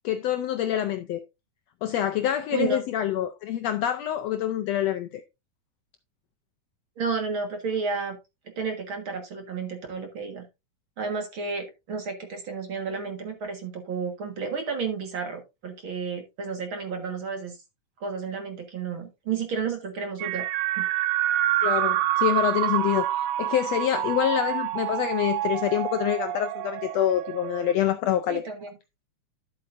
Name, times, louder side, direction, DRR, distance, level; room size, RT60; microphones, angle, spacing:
voice 1, 0.0-1.2 1.8-5.2 21.6-23.1 23.4-28.4, left 11 dB, 85° left, 1.5 m, -26 dB
voice 2, 7.0-8.2 8.6-10.5 11.0-17.6 18.0-20.4 20.7-20.8 28.3-28.7, right 5 dB, 50° right, 2.0 m, -32 dB
sound 1, 20.2-27.7, right 13 dB, 85° right, 1.4 m, -27 dB
11.5 x 7.7 x 2.5 m
omnidirectional pair, 3.6 m